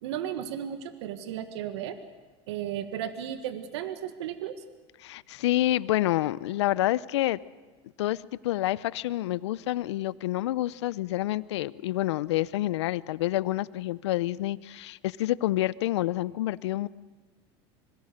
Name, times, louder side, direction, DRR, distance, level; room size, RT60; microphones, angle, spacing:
voice 1, 0.0-2.0 2.5-4.6, right 10 dB, 80° right, 9 dB, 1.5 m, -34 dB
voice 2, 5.0-7.4 8.0-16.9, left 15 dB, 85° left, 19 dB, 0.6 m, -28 dB
26.0 x 22.5 x 6.6 m, 1.3 s
hypercardioid pair, 95°, 14 cm